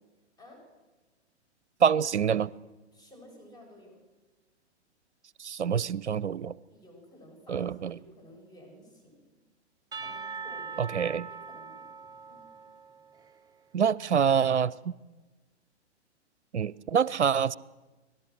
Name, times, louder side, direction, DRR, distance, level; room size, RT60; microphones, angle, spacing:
voice 1, 1.8-2.5 5.4-6.5 7.5-7.9 10.8-11.2 13.7-14.7 16.5-17.5, right 7 dB, 75° right, 21 dB, 0.6 m, -26 dB
voice 2, 2.9-4.0 6.7-9.2 10.0-12.0 12.3-12.4, equal, 10° left, 0 dB, 7.9 m, -53 dB
Percussion / Church bell, 9.9-13.6, right 5 dB, 10° right, 0.8 m, -42 dB
24.5 x 18.0 x 6.5 m, 1.2 s
figure-of-eight pair, 105°, 34 cm